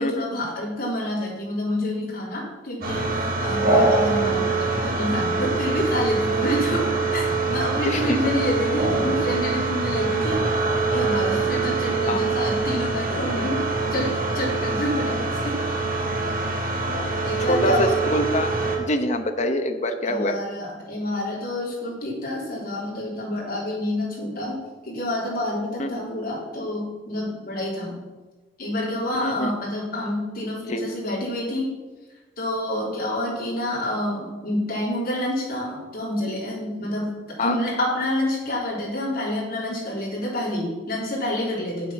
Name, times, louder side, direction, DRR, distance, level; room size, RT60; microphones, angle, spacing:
voice 1, 0.0-10.4 10.9-13.6 13.9-15.6 17.2-17.9 20.1-24.6 24.8-28.0 28.6-31.7 32.4-37.1 37.4-41.9, left 1 dB, 55° left, -4 dB, 3.7 m, -28 dB
sound 1, 2.8-18.8, right 3 dB, 55° right, 2.1 m, -24 dB
voice 2, 7.8-8.2 12.1-12.2 16.8-18.5 18.8-20.4 25.8-25.9 29.2-29.5 30.7-30.8 37.4-37.6, left 1 dB, 40° left, 7 dB, 0.9 m, -25 dB
8.2 x 7.9 x 5.9 m, 1.2 s
head